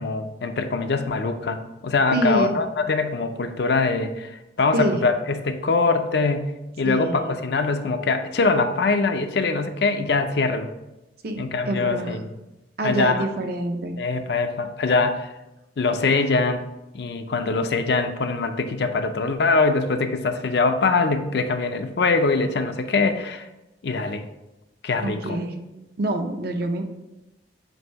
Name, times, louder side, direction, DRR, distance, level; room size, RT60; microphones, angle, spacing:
voice 1, 0.0-6.5 6.8-10.7 11.4-12.2 12.8-13.3 14.0-15.3 15.8-16.6 16.9-23.5 23.8-24.2 24.8-25.4, left 3 dB, 65° left, 8 dB, 0.5 m, -23 dB
voice 2, 2.1-2.6 4.7-5.0 6.8-7.3 11.2-12.2 12.8-14.0 25.0-25.6 26.0-26.8, right 1 dB, 60° right, 4 dB, 0.7 m, -26 dB
7.7 x 2.7 x 4.6 m, 0.97 s
head